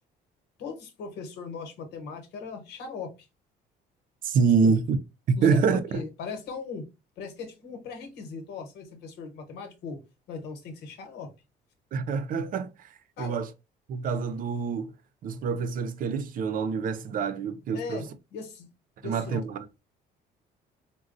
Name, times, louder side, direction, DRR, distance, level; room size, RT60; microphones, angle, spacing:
voice 1, 0.6-3.3 5.4-6.8 7.2-10.0 10.3-11.3 13.2-13.4 17.7-18.7 19.0-19.4, left 5 dB, 80° left, 1.1 m, -39 dB
voice 2, 4.2-5.0 5.3-6.0 11.9-12.9 13.2-13.5 13.9-14.9 15.2-18.0 19.0-19.8, right 5 dB, 55° right, 0.6 m, -26 dB
3.9 x 2.2 x 2.5 m
cardioid pair, 110°, 17 cm